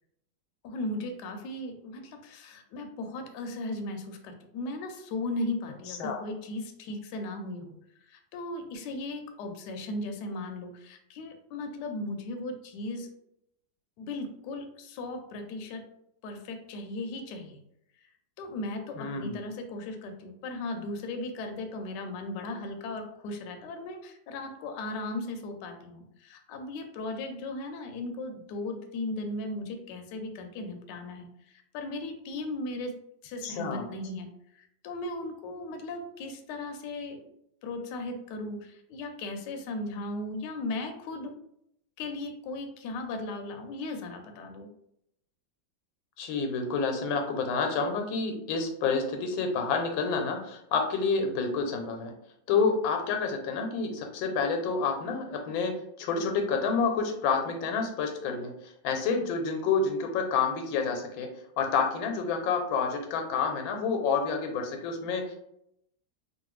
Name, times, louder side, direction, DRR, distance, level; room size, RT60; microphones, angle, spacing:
voice 1, 0.6-7.7 8.1-13.1 14.0-15.8 16.2-17.6 18.4-32.9 33.2-34.3 34.5-37.3 37.6-41.3 42.0-44.7, left 2 dB, 75° left, 5 dB, 1.1 m, -37 dB
voice 2, 5.9-6.2 19.0-19.4 33.4-33.8 46.2-52.1 52.5-55.7 56.0-58.5 58.8-61.3 61.6-65.4, left 5 dB, 90° left, 4 dB, 1.4 m, -28 dB
3.1 x 2.3 x 3.0 m, 0.76 s
omnidirectional pair, 2.1 m